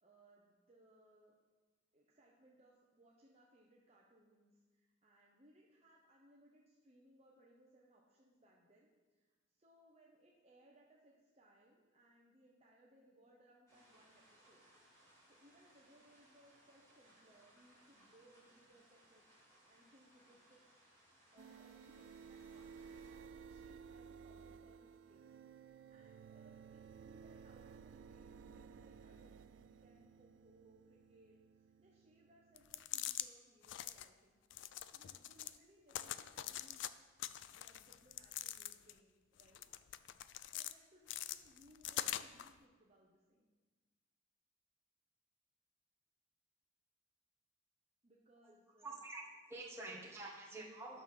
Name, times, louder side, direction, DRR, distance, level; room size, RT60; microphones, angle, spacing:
voice 1, 0.0-1.3 1.9-14.7 15.3-19.2 19.6-20.6 21.3-25.3 25.7-34.4 34.9-36.8 37.5-39.7 40.5-43.5 48.0-49.0 50.9-51.0, right 1 dB, 30° right, -3 dB, 1.0 m, -68 dB
sound 1, 13.7-23.1, right 1 dB, 15° left, 3.0 m, -68 dB
sound 2, 21.4-33.0, right 6 dB, 65° right, 0.3 m, -56 dB
sound 3, 32.6-33.3 33.6-34.1 34.5-35.6 35.9-36.9 37.2-39.0 39.4-40.7 41.1-42.5, left 12 dB, 65° left, 0.4 m, -44 dB
voice 2, 48.8-49.2 49.5-51.0, right 2 dB, 15° right, -3 dB, 1.6 m, -48 dB
9.9 x 6.5 x 5.6 m, 1.3 s
head